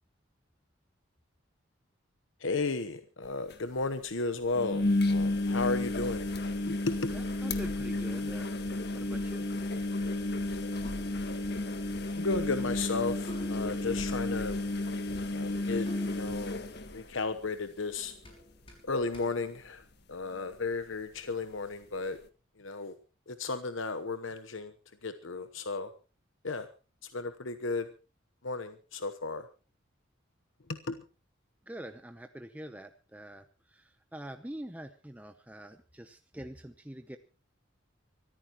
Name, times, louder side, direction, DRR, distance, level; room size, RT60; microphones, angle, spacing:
voice 1, 2.4-6.3 6.7-7.1 12.2-14.6 15.3-16.6 16.9-18.1 18.8-22.2 22.6-22.9 23.3-24.7 25.0-25.9 26.4-26.7 27.0-27.9 28.4-29.5 30.9-31.0, left 3 dB, 75° left, 10 dB, 1.1 m, -34 dB
sound 1, 3.2-3.3 3.5-3.6 4.5-17.6 18.0-18.4 18.7-18.8 20.6-20.7, left 2 dB, 55° left, 1.7 m, -32 dB
voice 2, 7.1-9.4 31.7-37.2, right 1 dB, 5° right, 7 dB, 0.8 m, -45 dB
sound 2, 10.8-20.4, left 1 dB, 25° left, 6.0 m, -52 dB
25.0 x 14.0 x 3.0 m, 0.34 s
head